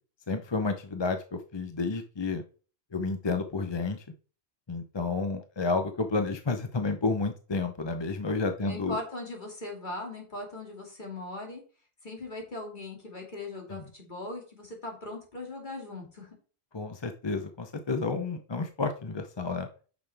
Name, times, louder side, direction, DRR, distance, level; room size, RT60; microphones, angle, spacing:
voice 1, 0.3-2.4 2.9-4.0 4.7-9.0 13.7-13.8 16.7-19.7, left 3 dB, 30° left, 7 dB, 0.6 m, -31 dB
voice 2, 8.6-11.6 12.0-16.4, left 2 dB, 45° left, 0 dB, 2.6 m, -39 dB
9.1 x 6.2 x 3.4 m, 0.38 s
omnidirectional pair, 1.1 m